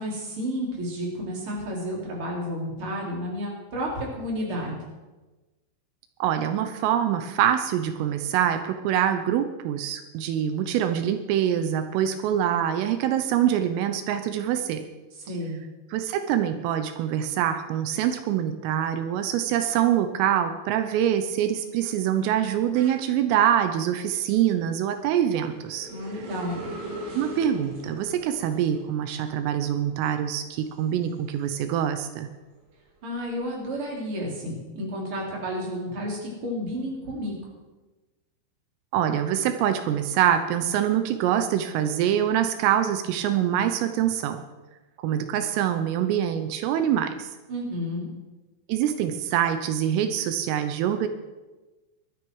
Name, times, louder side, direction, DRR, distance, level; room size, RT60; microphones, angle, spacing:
voice 1, 0.0-4.8 15.2-15.6 25.9-26.6 33.0-37.4 47.5-48.1, equal, 30° right, -2 dB, 3.9 m, -31 dB
voice 2, 6.2-14.8 15.9-25.9 27.2-32.3 38.9-44.4 45.0-47.3 48.7-51.1, right 10 dB, 85° right, 9 dB, 3.5 m, -25 dB
sound 1, 20.6-31.9 32.3-34.0, right 1 dB, 55° right, 5.3 m, -43 dB
20.0 x 12.5 x 4.7 m, 1.2 s
omnidirectional pair, 5.8 m